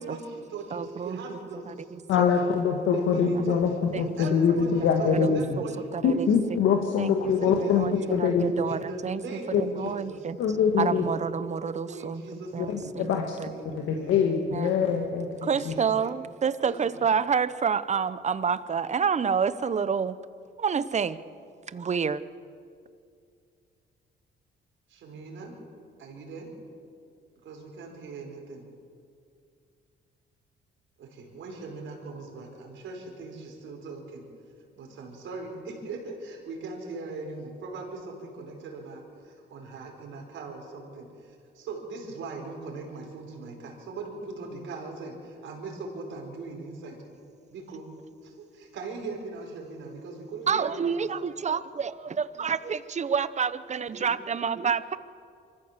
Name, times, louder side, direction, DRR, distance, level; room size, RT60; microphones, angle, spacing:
voice 1, 0.0-2.2 2.9-3.6 4.0-6.5 7.1-8.2 8.7-10.3 11.9-13.2 13.5-14.2 15.4-16.2 16.6-17.0 24.9-25.6 26.0-26.5 27.4-28.7 31.0-34.3 34.8-47.0 47.5-47.9 48.2-51.2 53.9-54.1, right 3 dB, 75° right, 1 dB, 4.8 m, -40 dB
voice 2, 0.7-2.0 3.9-4.2 5.1-5.4 5.9-6.3 7.0-9.2 9.6-10.4 10.8-13.5 14.5-14.7 15.4-20.2 20.6-21.2 21.7-22.2 50.5-55.0, right 6 dB, 35° right, 15 dB, 0.8 m, -29 dB
voice 3, 2.1-5.4 6.0-7.8 8.1-8.4 9.5-9.6 10.4-11.0 12.7-13.2 13.7-15.7, left 7 dB, 85° left, 2 dB, 1.7 m, -24 dB
25.0 x 14.5 x 7.4 m, 2.4 s
cardioid pair, 90°, 20 cm